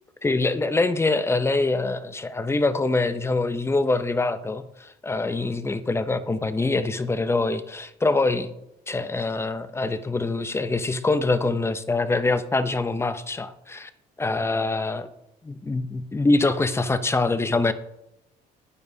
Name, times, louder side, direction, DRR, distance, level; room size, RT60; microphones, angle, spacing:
voice 1, 0.2-8.5 8.9-13.9 14.2-15.1 15.4-17.7, left 3 dB, 15° left, 12 dB, 0.6 m, -24 dB
12.0 x 9.4 x 2.7 m, 0.85 s
cardioid pair, 110°, 17 cm